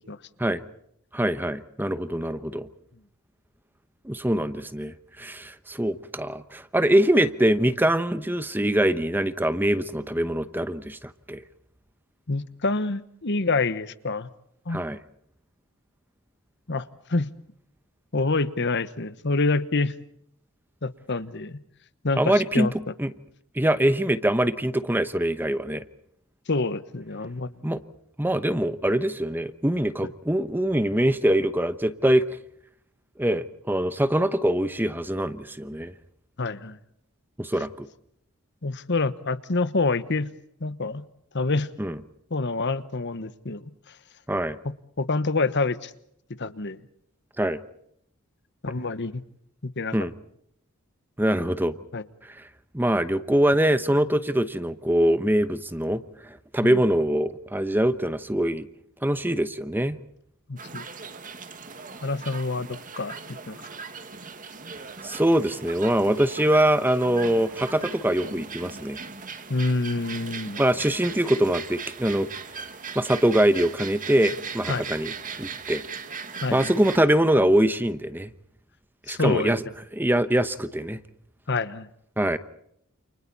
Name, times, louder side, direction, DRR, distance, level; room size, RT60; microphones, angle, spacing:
voice 1, 1.1-2.7 4.0-11.4 14.7-15.0 22.2-22.7 23.0-23.1 23.5-25.8 27.6-27.8 28.2-32.2 33.2-35.9 37.4-37.9 41.8-42.0 44.3-44.6 47.4-47.6 49.9-50.1 51.2-51.8 52.2-52.4 52.7-58.7 59.0-60.0 65.0-69.0 70.6-72.3 72.9-75.1 75.4-75.8 76.5-78.3 79.1-79.6 79.9-81.0 82.2-82.4, right 1 dB, 10° right, 12 dB, 1.0 m, -23 dB
voice 2, 12.3-14.3 14.7-14.8 16.7-17.3 18.1-19.9 20.8-21.6 22.0-22.7 26.5-27.5 36.4-36.8 38.6-40.3 40.6-41.0 41.3-41.7 42.3-43.6 45.0-45.9 46.4-46.8 48.6-49.2 49.6-49.9 51.9-52.0 56.6-56.8 60.5-60.8 62.0-62.7 63.0-63.1 63.5-63.6 69.5-70.6 74.7-74.8 76.4-76.7 79.1-79.5 81.5-81.9, left 3 dB, 55° left, 13 dB, 1.2 m, -27 dB
sound 1, 60.6-77.0, right 5 dB, 40° right, 2.0 m, -39 dB
29.5 x 29.0 x 4.2 m, 0.72 s
head